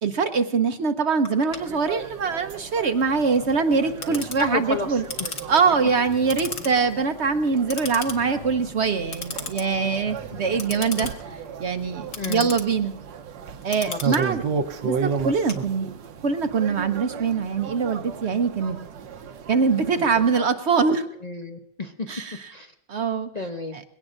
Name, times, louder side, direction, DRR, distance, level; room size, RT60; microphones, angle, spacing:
voice 1, 0.0-5.0 5.5-11.1 11.6-12.9 13.6-14.4 14.8-15.9 16.2-18.8 19.5-21.1 22.1-22.5 22.9-23.3 23.7-23.8, right 5 dB, 60° right, 8 dB, 0.7 m, -23 dB
Clock, 1.3-16.2, left 4 dB, 45° left, 1.6 m, -38 dB
sound 1, 1.5-20.4, right 6 dB, 80° right, 1.5 m, -35 dB
sound 2, 4.1-4.7 5.0-5.1 5.4-5.5 5.8-7.5 7.8-8.7 9.0-10.7 11.0-11.4 11.8-11.9, left 3 dB, 90° left, 4.4 m, -47 dB
voice 2, 4.4-5.0 12.2-12.5 13.8-14.3 20.0-20.4 21.2-22.1 22.5-22.7 23.3-23.8, left 2 dB, 60° left, 5 dB, 0.4 m, -31 dB
21.5 x 17.5 x 2.5 m, 0.71 s
omnidirectional pair, 2.0 m